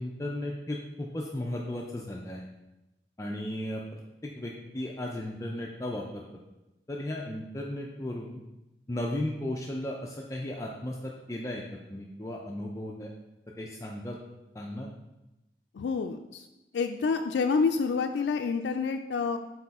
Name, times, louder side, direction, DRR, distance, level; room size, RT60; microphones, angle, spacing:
voice 1, 0.0-2.4 3.2-6.2 6.9-8.4 8.9-11.6 11.9-13.1 13.6-14.2 14.5-14.9, left 1 dB, 15° left, -1 dB, 0.4 m, -35 dB
voice 2, 15.8-16.4 16.7-19.4, left 5 dB, 85° left, 5 dB, 0.4 m, -28 dB
6.6 x 4.2 x 4.1 m, 0.98 s
head